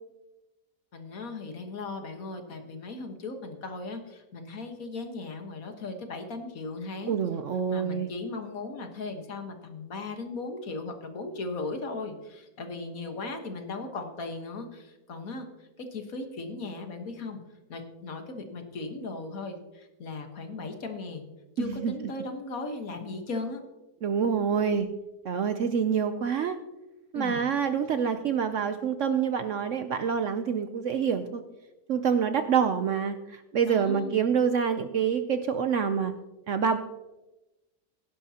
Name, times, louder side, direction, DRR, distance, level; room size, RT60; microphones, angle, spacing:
voice 1, 0.9-7.2 7.7-15.5 15.8-17.4 17.7-21.3 21.6-23.6 27.2-27.5 33.7-34.1, left 3 dB, 60° left, 5 dB, 1.7 m, -37 dB
voice 2, 7.0-8.1 21.6-21.9 24.0-24.9 25.2-26.6 27.1-31.4 31.9-36.1 36.5-36.8, right 7 dB, 65° right, 9 dB, 0.8 m, -26 dB
16.5 x 11.0 x 2.8 m, 1.0 s
omnidirectional pair, 1.7 m